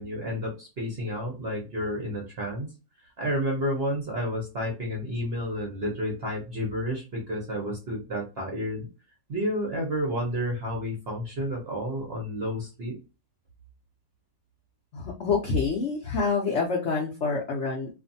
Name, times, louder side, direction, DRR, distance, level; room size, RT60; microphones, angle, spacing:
voice 1, 0.0-2.7 3.2-8.9 9.3-13.0, equal, 50° right, -1 dB, 0.7 m, -30 dB
voice 2, 14.9-17.9, left 4 dB, 75° left, -1 dB, 0.6 m, -27 dB
2.5 x 2.5 x 2.6 m, 0.31 s
omnidirectional pair, 1.9 m